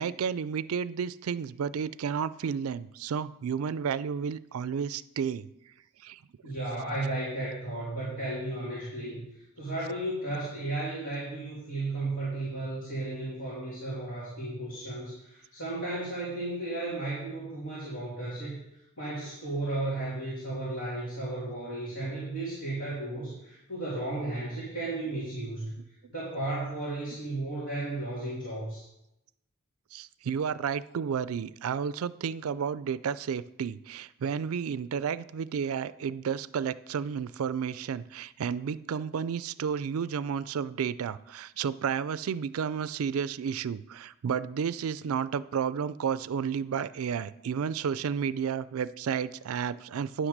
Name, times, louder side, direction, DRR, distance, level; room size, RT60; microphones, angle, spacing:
voice 1, 0.0-5.5 6.0-6.2 29.9-50.3, right 7 dB, 90° right, 17 dB, 0.4 m, -32 dB
voice 2, 6.4-9.2 9.6-18.6 19.0-25.7 26.1-28.8, right 2 dB, 80° left, -8 dB, 3.0 m, -34 dB
9.8 x 6.0 x 6.5 m, 0.85 s
head